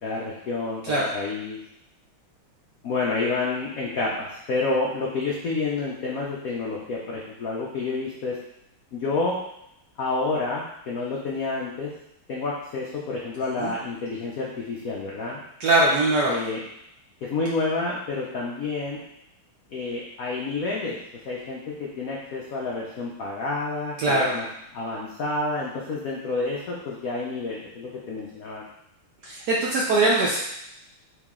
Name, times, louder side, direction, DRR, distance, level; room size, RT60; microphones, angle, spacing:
voice 1, 0.0-1.6 2.8-8.4 8.9-9.4 10.0-11.9 12.3-15.4 16.3-16.6 17.2-19.0 19.7-21.0 21.2-24.4 24.7-28.7, left 3 dB, 85° left, -4 dB, 0.7 m, -29 dB
voice 2, 15.6-16.4 24.0-24.3 29.2-30.4, right 2 dB, 75° right, -3 dB, 0.9 m, -21 dB
4.7 x 3.0 x 3.6 m, 0.80 s
omnidirectional pair, 2.4 m